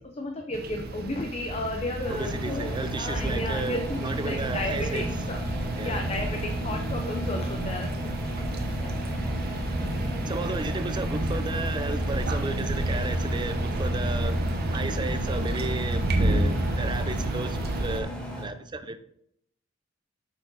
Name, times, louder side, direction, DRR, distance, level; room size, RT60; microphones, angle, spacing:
voice 1, 0.0-2.7 3.0-5.4 5.8-7.9 8.8-8.9, left 2 dB, 30° left, 0.7 m, -33 dB
sound 1, 0.5-18.0, right 1 dB, 50° right, 0.8 m, -30 dB
Engine, 2.0-18.4, equal, 5° left, 1.4 m, -36 dB
voice 2, 2.1-5.0 5.8-6.0 10.3-14.4 14.7-19.0, right 3 dB, 25° right, 0.5 m, -34 dB
6.8 x 6.2 x 4.0 m
head